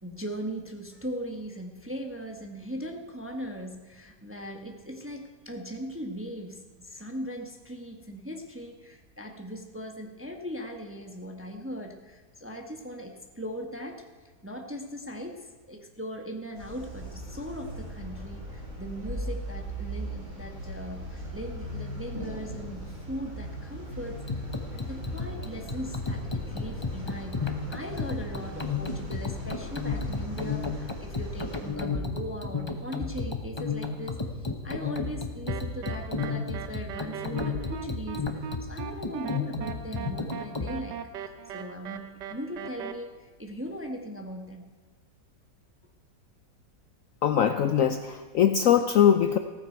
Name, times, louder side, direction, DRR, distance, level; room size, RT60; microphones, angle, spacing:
voice 1, 0.0-14.0 14.4-24.2 24.7-41.0 41.5-44.7, equal, 10° right, 3 dB, 0.9 m, -39 dB
sound 1, 16.5-31.7, right 1 dB, 55° right, 5.9 m, -39 dB
sound 2, 24.2-40.7, left 4 dB, 20° left, 0.7 m, -32 dB
sound 3, 35.5-42.9, right 8 dB, 85° right, 1.5 m, -39 dB
voice 2, 47.2-49.4, left 9 dB, 65° left, 8 dB, 0.8 m, -22 dB
15.5 x 14.5 x 4.5 m, 1.4 s
omnidirectional pair, 1.8 m